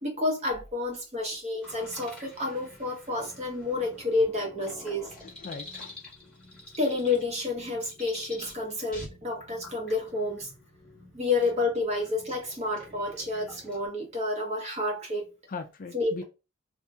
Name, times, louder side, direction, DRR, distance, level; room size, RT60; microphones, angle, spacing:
voice 1, 0.0-5.1 6.8-10.5 11.1-15.3 15.9-16.2, left 2 dB, 30° right, 1.0 m, -30 dB
sound 1, 1.6-13.9, left 2 dB, 5° left, 1.1 m, -48 dB
voice 2, 5.2-6.0 15.5-16.2, left 4 dB, 40° left, 0.4 m, -39 dB
2.8 x 2.6 x 3.3 m
head